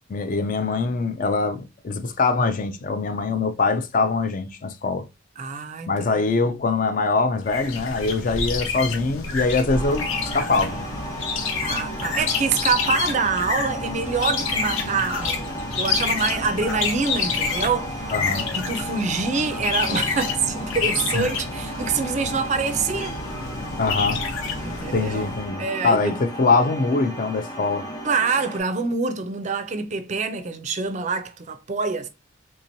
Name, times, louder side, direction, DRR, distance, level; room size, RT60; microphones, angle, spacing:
voice 1, 0.1-5.1 5.9-10.1 10.3-10.8 18.1-18.5 21.1-21.3 23.8-24.2 24.9-27.9, left 3 dB, 40° left, 0.4 m, -23 dB
voice 2, 5.4-6.6 11.6-23.2 24.6-25.3 25.6-26.2 28.0-32.1, right 4 dB, 35° right, 0.4 m, -26 dB
sound 1, 7.5-25.5, left 5 dB, 80° left, 0.7 m, -28 dB
sound 2, 9.7-28.6, right 1 dB, 20° left, 0.9 m, -34 dB
3.6 x 2.9 x 2.6 m
head